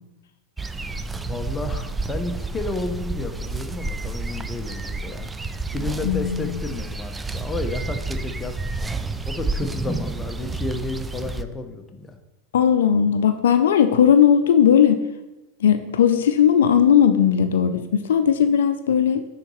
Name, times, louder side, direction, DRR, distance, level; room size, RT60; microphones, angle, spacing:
sound 1, 0.6-11.4, right 3 dB, 10° right, 0.4 m, -30 dB
voice 1, 1.3-5.3 5.7-8.8 9.2-12.2, left 3 dB, 20° left, 6 dB, 0.8 m, -32 dB
voice 2, 6.0-6.6 12.5-15.0 15.6-19.3, left 8 dB, 75° left, 9 dB, 0.4 m, -17 dB
9.7 x 4.0 x 3.1 m, 1.0 s
hypercardioid pair, 100°, 0 cm